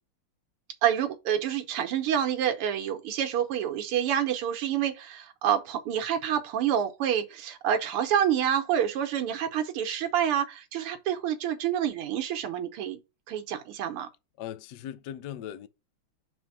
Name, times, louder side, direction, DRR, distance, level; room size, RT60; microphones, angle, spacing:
voice 1, 0.8-13.0 13.3-14.1, right 9 dB, 90° right, 1.9 m, -28 dB
voice 2, 14.4-15.7, left 10 dB, 65° left, 1.1 m, -39 dB
6.2 x 3.5 x 5.8 m
omnidirectional pair, 2.4 m